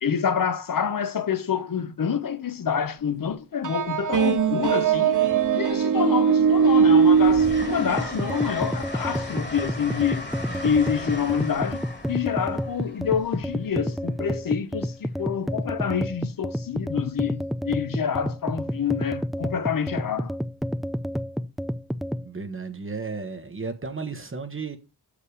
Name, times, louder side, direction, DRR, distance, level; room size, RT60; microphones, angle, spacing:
voice 1, 0.0-5.2 5.5-10.2 10.6-20.4, left 7 dB, 55° left, 0.9 m, -27 dB
Train, 3.0-3.1 4.3-5.0 5.4-14.2 15.8-16.0, left 2 dB, 25° left, 1.7 m, -38 dB
sound 1, 3.6-8.8, right 7 dB, 50° right, 0.7 m, -21 dB
sound 2, 8.0-22.3, equal, ahead, 0.3 m, -30 dB
voice 2, 22.2-24.8, right 4 dB, 30° right, 1.1 m, -33 dB
6.5 x 5.0 x 4.9 m
cardioid pair, 65°, 40 cm